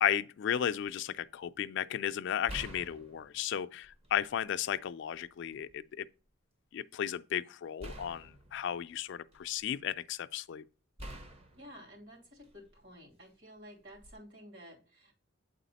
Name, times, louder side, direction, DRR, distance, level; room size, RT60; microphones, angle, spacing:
voice 1, 0.0-6.1 6.7-10.6, left 9 dB, 60° left, 0.3 m, -34 dB
sound 1, 0.9-1.0 2.5-4.3 4.8-5.7 7.8-9.7 11.0-12.8 13.9-14.1, equal, 30° right, 0.8 m, -48 dB
voice 2, 11.5-15.1, equal, 60° right, 2.7 m, -52 dB
8.5 x 4.1 x 4.0 m
head